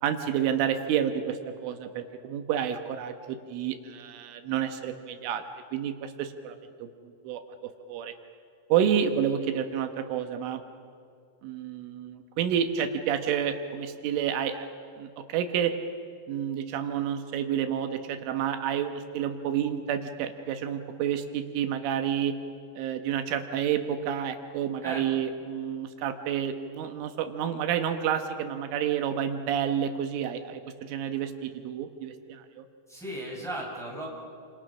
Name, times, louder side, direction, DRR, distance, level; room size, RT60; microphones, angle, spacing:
voice 1, 0.0-5.4 5.7-6.9 7.2-7.4 7.9-8.1 8.7-10.6 11.4-14.7 15.0-15.7 16.3-22.4 22.8-32.6, right 9 dB, 85° right, 7 dB, 3.7 m, -29 dB
voice 2, 32.9-34.1, right 1 dB, ahead, -3 dB, 6.5 m, -36 dB
29.0 x 27.5 x 6.3 m, 2.4 s
omnidirectional pair, 5.5 m